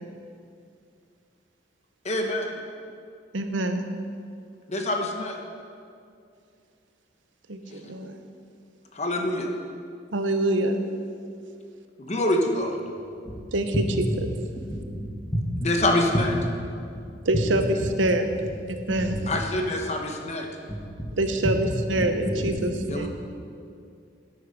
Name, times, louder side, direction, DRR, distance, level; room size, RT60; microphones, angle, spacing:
voice 1, 2.0-2.6 4.7-5.4 7.8-7.9 8.9-9.5 12.0-12.8 15.6-16.3 19.3-20.5 22.9-23.1, left 1 dB, 35° left, 2 dB, 1.0 m, -26 dB
voice 2, 3.3-3.9 7.5-8.2 10.1-10.8 13.5-14.1 17.3-18.3 18.7-19.2 21.2-23.1, right 1 dB, 90° right, 7 dB, 0.8 m, -25 dB
voice 3, 14.5-15.2 16.9-17.0 18.9-19.4 20.7-21.1 22.0-22.7, equal, 20° left, -1 dB, 1.4 m, -33 dB
10.5 x 8.5 x 5.3 m, 2.4 s
head